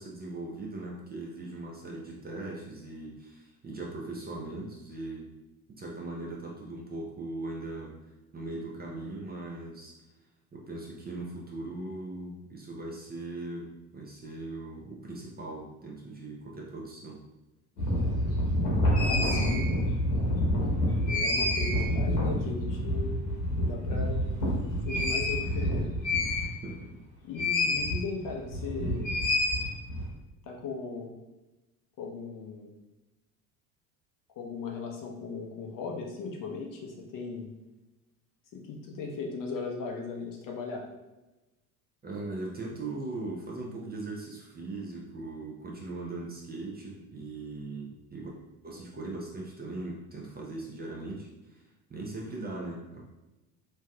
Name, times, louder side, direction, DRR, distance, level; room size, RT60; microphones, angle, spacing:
voice 1, 0.0-5.3 5.7-9.9 10.5-17.2 26.6-26.8 42.0-48.3 48.6-51.6 51.9-53.0, right 2 dB, 20° right, -2 dB, 0.6 m, -39 dB
sound 1, 17.8-26.8 27.3-28.0 28.3-30.1, left 1 dB, 85° left, 1.3 m, -27 dB
voice 2, 19.0-19.7 21.1-23.2 23.5-24.2 24.8-25.9 26.3-26.5 27.2-29.1 30.5-31.1 32.0-32.7 34.4-37.5 38.5-40.9, left 4 dB, 45° left, 1 dB, 0.7 m, -37 dB
3.2 x 2.7 x 2.2 m, 1.0 s
hypercardioid pair, 75°, 46 cm